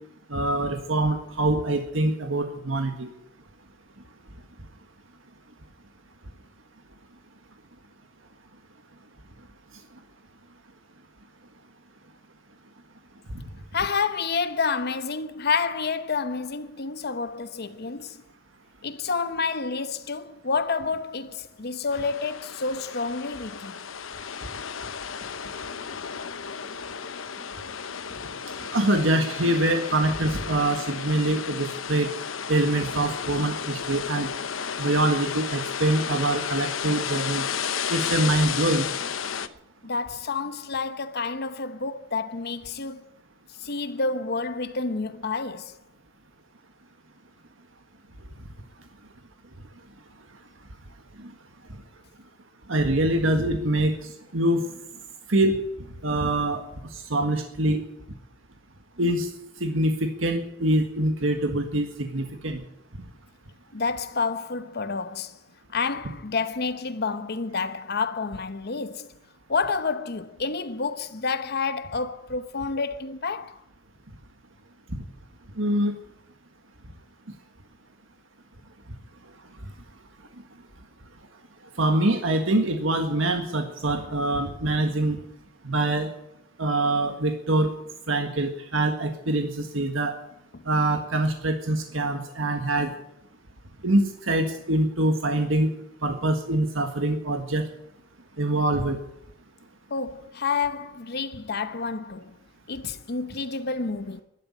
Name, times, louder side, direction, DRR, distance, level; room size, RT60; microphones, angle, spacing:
voice 1, 0.3-3.1 28.7-32.1 32.5-34.3 34.8-37.4 37.9-38.9 52.7-54.7 55.3-55.6 56.0-56.6 56.9-57.8 59.0-59.3 59.6-62.6 75.6-75.9 81.8-85.2 85.6-86.1 86.6-87.7 88.1-90.2 90.7-92.9 93.8-95.7 96.0-97.7 98.4-99.0, right 1 dB, 80° right, 1.7 m, -24 dB
voice 2, 13.7-18.2 18.8-23.8 39.8-43.1 43.5-45.8 63.7-65.4 65.7-69.2 69.5-73.6 90.5-90.6 99.9-102.3 102.7-104.2, left 4 dB, 55° left, 0.9 m, -29 dB
sound 1, 21.9-39.5, left 7 dB, 80° left, 1.0 m, -33 dB
12.5 x 12.0 x 9.9 m
head